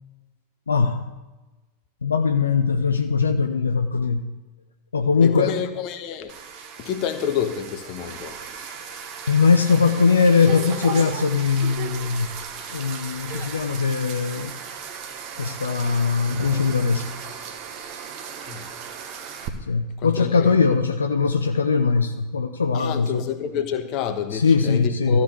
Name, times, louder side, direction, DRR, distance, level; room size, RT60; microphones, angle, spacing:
voice 1, 0.7-1.1 2.0-4.3 4.9-5.6 8.5-8.6 9.3-12.4 12.7-14.6 15.4-17.1 19.7-23.2 24.3-25.2, left 5 dB, 75° left, 0.6 m, -21 dB
voice 2, 5.2-6.3 6.8-8.4 18.4-18.7 20.0-20.6 22.7-25.2, left 8 dB, 40° left, 1.1 m, -28 dB
sound 1, 6.3-19.5, right 7 dB, 40° right, 1.2 m, -36 dB
13.5 x 4.6 x 8.2 m
figure-of-eight pair, 90°, 0 cm